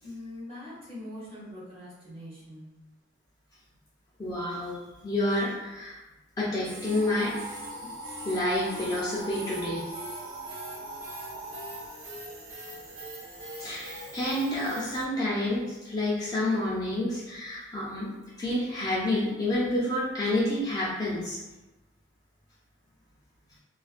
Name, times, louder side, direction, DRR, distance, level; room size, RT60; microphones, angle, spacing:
voice 1, 0.0-2.7, left 1 dB, 25° right, -8 dB, 0.8 m, -42 dB
voice 2, 4.2-6.0 6.4-7.3 8.2-9.8 13.6-18.1 18.4-21.4, left 1 dB, 20° left, -7 dB, 0.4 m, -29 dB
sound 1, 6.6-15.0, right 1 dB, 90° right, 0.8 m, -43 dB
sound 2, 6.8-11.9, right 1 dB, 60° right, 0.5 m, -41 dB
2.4 x 2.1 x 2.4 m, 1.1 s
head